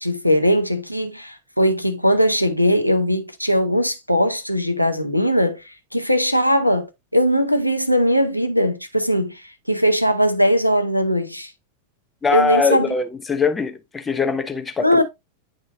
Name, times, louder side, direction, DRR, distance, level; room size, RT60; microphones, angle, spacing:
voice 1, 0.0-6.9 7.1-11.5 12.3-12.9 14.8-15.0, equal, 90° left, 0.7 m, -19 dB
voice 2, 12.2-15.0, left 5 dB, 15° left, 0.8 m, -22 dB
9.8 x 3.7 x 2.5 m
figure-of-eight pair, 90°, 0 cm